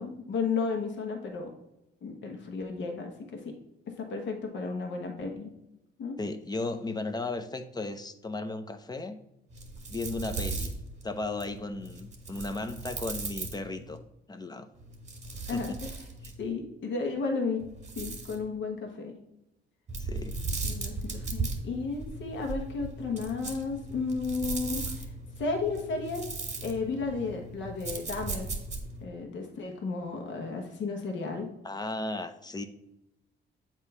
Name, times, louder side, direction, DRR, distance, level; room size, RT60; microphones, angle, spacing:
voice 1, 0.0-1.5 2.0-3.5 4.0-5.5 6.0-6.2 15.5-15.9 16.4-17.6 17.9-19.1 20.6-25.1 25.4-26.3 26.6-28.5 29.0-31.5, left 4 dB, 70° left, 3 dB, 1.3 m, -33 dB
voice 2, 6.2-9.2 9.9-10.8 11.0-14.0 14.3-14.7 15.5-15.7 20.0-20.4 31.6-32.7, left 2 dB, 20° left, 9 dB, 0.6 m, -35 dB
sound 1, 9.5-14.0 14.8-16.5 17.6-18.4 19.9-29.0, right 3 dB, 35° right, 1.8 m, -37 dB
7.8 x 3.0 x 5.6 m, 0.89 s
cardioid pair, 90°, 20 cm